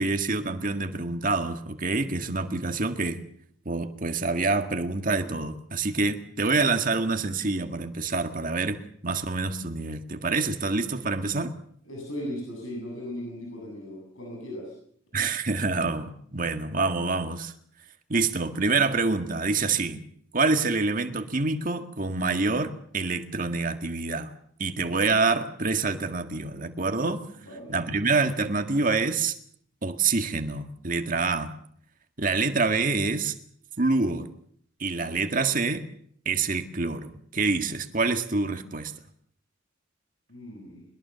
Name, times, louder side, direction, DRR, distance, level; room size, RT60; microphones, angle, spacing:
voice 1, 0.0-3.2 3.7-11.6 15.1-17.5 18.1-20.0 20.3-24.3 24.6-27.2 27.7-29.3 29.8-31.6 32.2-33.3 33.8-34.3 34.8-35.9 36.3-38.9, right 3 dB, 40° right, 7 dB, 1.8 m, -26 dB
voice 2, 11.8-14.7 27.4-27.8 40.3-40.9, left 1 dB, 80° left, 0 dB, 7.7 m, -37 dB
22.0 x 21.5 x 6.9 m, 0.62 s
head